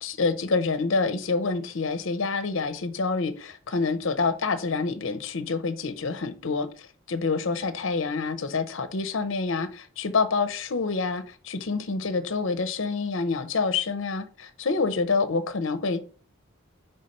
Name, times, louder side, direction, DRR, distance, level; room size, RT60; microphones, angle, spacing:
voice 1, 0.0-16.0, left 4 dB, 60° left, 0.7 m, -27 dB
5.6 x 3.4 x 5.2 m
head